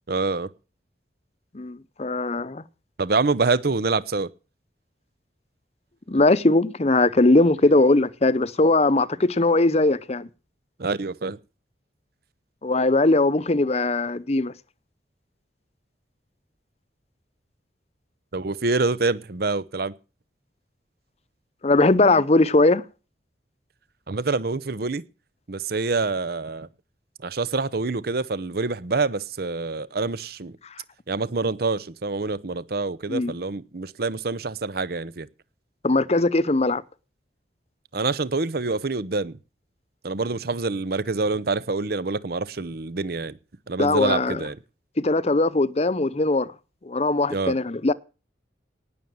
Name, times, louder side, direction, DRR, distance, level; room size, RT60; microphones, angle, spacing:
voice 1, 0.1-0.5 3.0-4.3 10.8-11.4 18.3-19.9 24.1-25.0 25.5-26.7 27.2-30.5 31.1-35.3 37.9-39.4 40.0-43.4 43.7-44.6 47.3-47.6, right 3 dB, 55° right, 0.8 m, -26 dB
voice 2, 1.5-2.6 6.1-10.3 12.6-14.5 21.6-22.8 33.1-33.3 35.8-36.8 43.8-44.4 45.0-46.5 46.8-47.9, left 2 dB, 35° left, 0.7 m, -20 dB
18.5 x 7.0 x 7.8 m
head